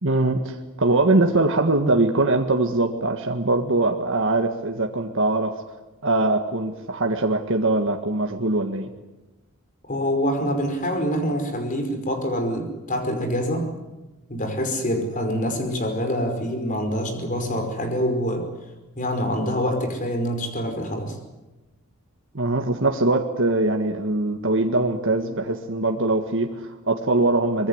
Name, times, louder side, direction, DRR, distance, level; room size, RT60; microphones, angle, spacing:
voice 1, 0.0-5.5 6.0-8.9 22.3-27.7, right 2 dB, 60° right, 3 dB, 1.8 m, -22 dB
voice 2, 9.9-13.7 14.3-18.5 18.9-21.2, equal, 35° left, 6 dB, 5.3 m, -25 dB
25.0 x 22.0 x 8.1 m, 1.1 s
head